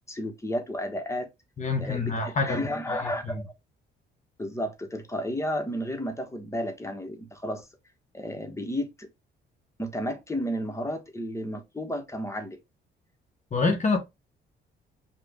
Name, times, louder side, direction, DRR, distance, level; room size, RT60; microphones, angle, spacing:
voice 1, 0.1-1.3 1.8-3.4 4.4-7.7 8.1-9.1 9.8-12.6, equal, 15° left, 1.1 m, -32 dB
voice 2, 1.6-2.6 2.9-3.5 13.5-14.0, left 4 dB, 35° left, 1.1 m, -27 dB
5.0 x 2.4 x 3.5 m
cardioid pair, 90°, 20 cm